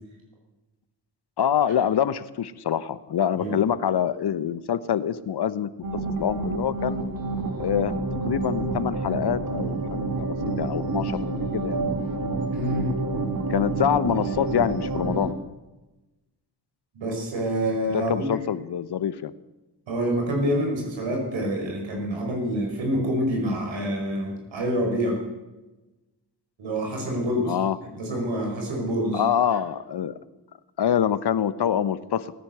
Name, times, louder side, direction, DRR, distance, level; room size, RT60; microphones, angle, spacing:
voice 1, 1.4-5.7 6.2-7.1 7.6-7.9 8.3-11.8 13.5-15.3 17.9-19.3 27.5-27.8 29.1-30.2 30.8-32.3, left 9 dB, 60° left, 15 dB, 1.0 m, -25 dB
sound 1, 5.8-15.3, right 3 dB, 50° right, 2.5 m, -28 dB
voice 2, 12.5-12.9 16.9-18.3 19.9-25.2 26.6-27.5 28.0-29.2, equal, 80° right, 0 dB, 5.6 m, -26 dB
18.5 x 9.9 x 8.0 m, 1.1 s
cardioid pair, 55°, 45 cm